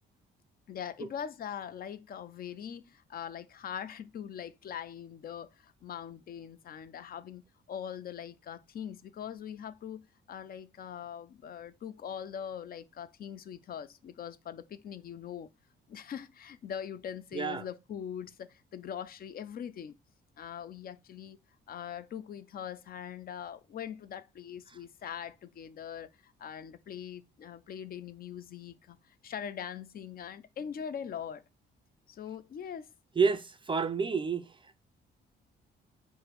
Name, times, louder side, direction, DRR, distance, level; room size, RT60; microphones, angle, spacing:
voice 1, 0.7-10.0 10.3-15.5 15.9-20.0 20.4-21.4 21.7-31.4 32.1-32.9, left 8 dB, 50° left, 0.5 m, -42 dB
voice 2, 17.3-17.7 33.2-34.7, right 5 dB, 25° right, 0.4 m, -29 dB
4.8 x 2.1 x 4.5 m
cardioid pair, 90°, 20 cm